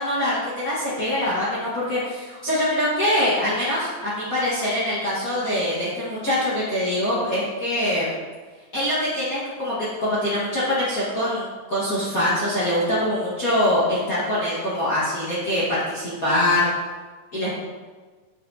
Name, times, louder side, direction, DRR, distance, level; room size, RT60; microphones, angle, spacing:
voice 1, 0.0-8.1 8.7-16.7 17.3-17.5, left 1 dB, 60° left, -10 dB, 0.9 m, -24 dB
9.0 x 5.9 x 2.8 m, 1.4 s
omnidirectional pair, 4.3 m